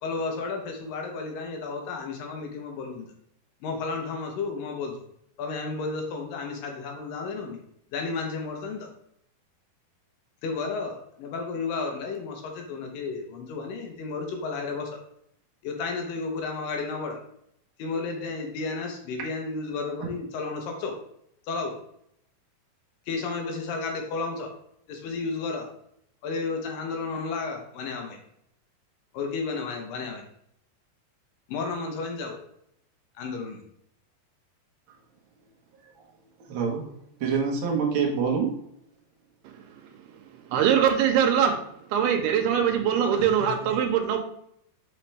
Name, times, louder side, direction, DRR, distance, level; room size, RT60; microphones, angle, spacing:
voice 1, 0.0-3.1 3.6-5.0 5.4-7.6 7.9-8.9 10.4-15.0 15.6-17.2 17.8-21.0 21.4-21.7 23.1-24.5 24.9-25.7 26.2-28.2 29.1-30.3 31.5-32.4 33.2-33.6, left 4 dB, 70° left, 2 dB, 2.3 m, -32 dB
voice 2, 36.5-36.9 37.2-38.5 43.1-43.3 43.6-43.7, right 6 dB, 70° right, -2 dB, 1.2 m, -26 dB
voice 3, 40.5-41.6 41.9-44.2, right 8 dB, 85° right, 4 dB, 2.7 m, -22 dB
5.9 x 5.7 x 3.3 m, 0.72 s
omnidirectional pair, 4.5 m